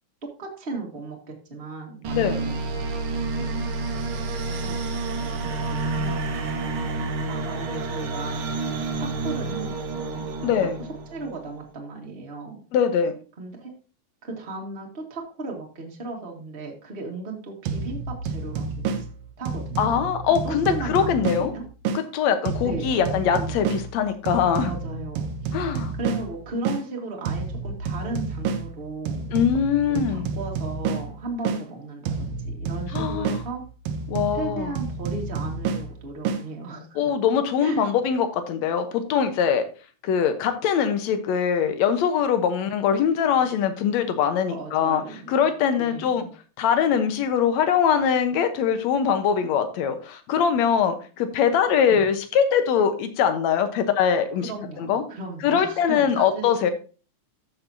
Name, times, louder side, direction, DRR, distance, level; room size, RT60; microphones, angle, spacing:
voice 1, 0.2-2.9 3.3-3.7 4.5-6.9 7.3-12.6 13.4-13.7 14.2-19.0 19.4-19.9 20.3-21.6 22.6-23.0 23.3-23.8 24.6-25.6 26.0-29.3 29.9-33.6 34.3-37.1 37.6-37.9 44.5-45.5 45.8-46.3 51.9-52.0 54.4-56.5, right 2 dB, 25° right, 0 dB, 1.7 m, -36 dB
sound 1, 2.0-11.5, right 3 dB, 55° right, 1.7 m, -29 dB
voice 2, 10.4-10.8 12.7-13.2 19.8-21.5 21.9-24.7 25.5-25.9 29.3-30.3 32.9-33.4 34.1-34.7 37.0-39.7 40.0-45.0 45.3-46.2 46.6-54.5 54.8-55.0 55.4-56.7, left 7 dB, 75° left, 9 dB, 2.3 m, -22 dB
sound 2, 17.6-22.0 22.4-26.8 27.2-31.6 32.0-36.4, right 5 dB, 75° right, 2.0 m, -30 dB
13.5 x 6.9 x 2.8 m, 0.35 s
omnidirectional pair, 3.3 m